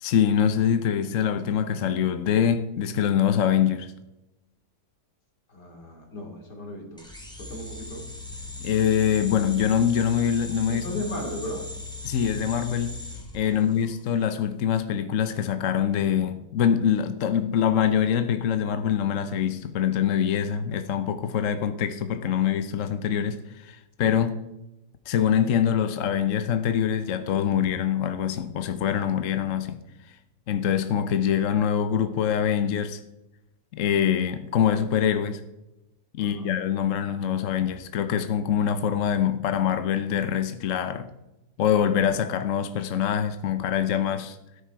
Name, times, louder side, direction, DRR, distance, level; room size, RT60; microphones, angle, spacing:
voice 1, 0.0-3.9 8.6-10.9 12.0-13.0 13.3-24.4 25.1-29.8 30.5-33.0 33.7-35.4 36.1-41.1 41.6-44.4, left 8 dB, 55° left, 1.0 m, -24 dB
voice 2, 5.5-7.1 7.4-8.1 10.7-11.7 13.5-13.7 36.2-36.5, left 1 dB, 80° left, 3.4 m, -36 dB
sound 1, 7.0-14.1, left 3 dB, 5° left, 2.6 m, -38 dB
13.0 x 10.0 x 4.7 m
omnidirectional pair, 1.8 m